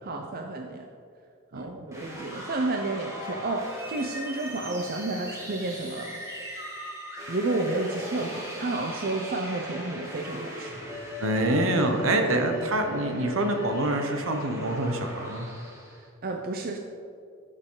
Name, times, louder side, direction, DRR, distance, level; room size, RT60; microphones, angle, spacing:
voice 1, 0.0-0.9 1.5-6.7 7.3-10.8 16.2-16.8, right 2 dB, 45° right, 3 dB, 0.6 m, -31 dB
sound 1, 1.9-16.0, left 1 dB, 15° right, 1.9 m, -39 dB
voice 2, 11.2-15.5, right 1 dB, 70° right, 5 dB, 1.1 m, -26 dB
13.5 x 6.7 x 3.9 m, 2.3 s
head